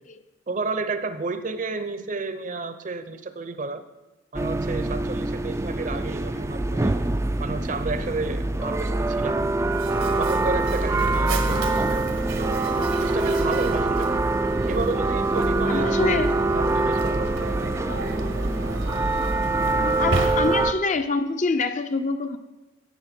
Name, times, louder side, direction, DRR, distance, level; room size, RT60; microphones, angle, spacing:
voice 1, 0.5-3.8 4.3-7.0 7.4-9.5 10.2-12.0 12.4-12.7 13.0-14.1 14.7-16.3 16.5-17.4 18.1-18.3, right 3 dB, 40° right, 11 dB, 0.7 m, -31 dB
sound 1, 4.3-20.7, right 2 dB, 15° right, 0.3 m, -24 dB
Mechanisms, 9.7-20.8, right 2 dB, 75° right, 1.2 m, -33 dB
voice 2, 11.5-11.8 15.7-16.4 19.6-22.4, left 3 dB, 40° left, 8 dB, 0.5 m, -26 dB
13.0 x 8.5 x 4.4 m, 1.1 s
head